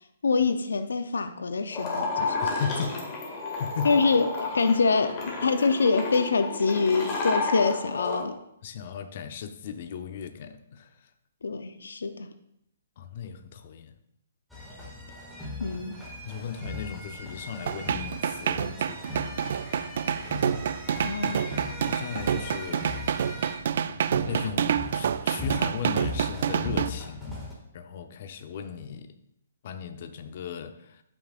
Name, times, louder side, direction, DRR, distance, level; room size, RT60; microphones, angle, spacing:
voice 1, 0.2-2.4 3.8-8.4 11.4-12.3 15.6-16.0 21.0-21.4, left 4 dB, 90° left, 10 dB, 0.6 m, -25 dB
Glass Drag, 1.7-8.2, left 3 dB, 30° left, 2.0 m, -31 dB
voice 2, 2.2-3.0 3.6-3.9 8.6-11.1 13.0-13.9 16.2-19.3 21.2-21.4 21.8-22.9 24.3-27.4 27.7-29.1 29.6-31.0, left 7 dB, 50° left, 8 dB, 0.7 m, -37 dB
sound 1, 14.5-27.5, left 1 dB, ahead, 1.9 m, -39 dB
sound 2, 17.7-26.9, right 8 dB, 60° right, 0.4 m, -28 dB
12.5 x 6.1 x 2.4 m, 0.78 s
hypercardioid pair, 150°, 0 cm